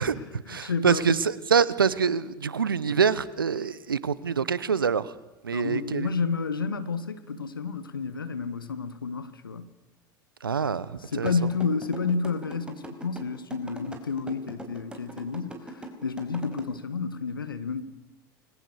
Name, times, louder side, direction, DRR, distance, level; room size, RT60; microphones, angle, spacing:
voice 1, 0.0-5.1 5.4-6.1 10.4-11.3, right 6 dB, 85° right, 1.1 m, -25 dB
voice 2, 0.6-1.2 5.5-9.7 10.6-10.7 11.1-17.8, left 5 dB, 85° left, 1.7 m, -30 dB
sound 1, 11.3-16.6, right 1 dB, 10° right, 5.0 m, -40 dB
29.5 x 22.0 x 6.6 m
figure-of-eight pair, 75°, 11 cm